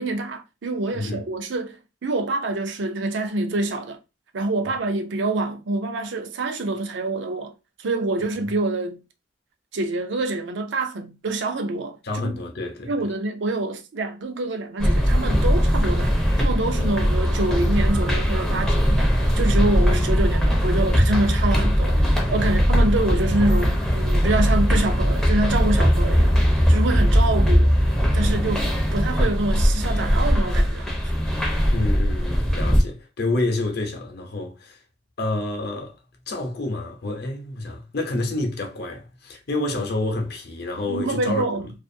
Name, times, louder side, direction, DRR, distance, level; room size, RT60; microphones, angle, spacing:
voice 1, 0.0-4.0 4.3-7.5 7.8-9.0 9.7-12.3 12.8-27.8 28.1-30.9 40.8-41.7, right 2 dB, 70° right, 0.5 m, -26 dB
voice 2, 0.9-1.2 12.0-12.9 22.4-22.7 28.2-28.6 31.7-34.8 35.2-36.0 36.3-41.4, left 2 dB, 60° left, 0.7 m, -28 dB
sound 1, 14.8-32.8, equal, 5° left, 0.5 m, -20 dB
2.5 x 2.4 x 2.6 m
head